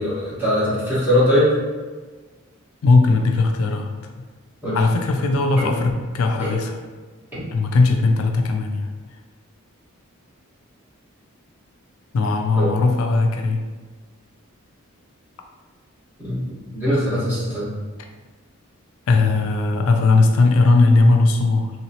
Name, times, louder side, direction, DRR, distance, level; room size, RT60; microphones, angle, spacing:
voice 1, 0.0-1.5 4.6-4.8 5.6-5.7 6.4-6.5 7.3-7.4 12.6-12.7 16.2-16.4 16.7-17.7, equal, 10° right, -10 dB, 1.2 m, -21 dB
voice 2, 2.8-4.1 4.7-6.8 7.5-8.9 12.1-13.6 19.1-21.7, left 3 dB, 75° left, 4 dB, 0.3 m, -18 dB
3.1 x 3.0 x 2.8 m, 1.4 s
head